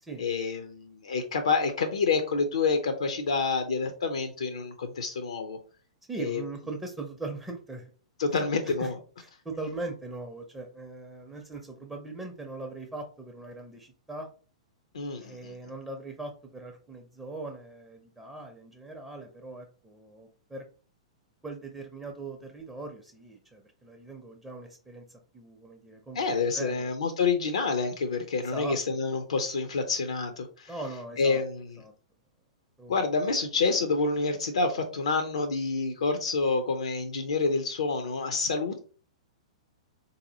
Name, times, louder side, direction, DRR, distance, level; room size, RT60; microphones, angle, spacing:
voice 1, 0.2-5.6 6.2-6.4 8.2-9.0 14.9-15.6 26.1-30.7 31.2-31.8 32.9-38.8, left 4 dB, 65° left, 7 dB, 0.5 m, -28 dB
voice 2, 6.1-7.9 8.7-8.9 9.2-14.3 15.2-20.6 21.4-25.0 25.3-26.2 26.5-26.9 28.4-28.8 30.7-31.4 31.8-31.9 32.8-32.9, right 3 dB, 10° right, 2 dB, 0.5 m, -40 dB
3.8 x 2.7 x 2.7 m, 0.39 s
figure-of-eight pair, 105°, 3 cm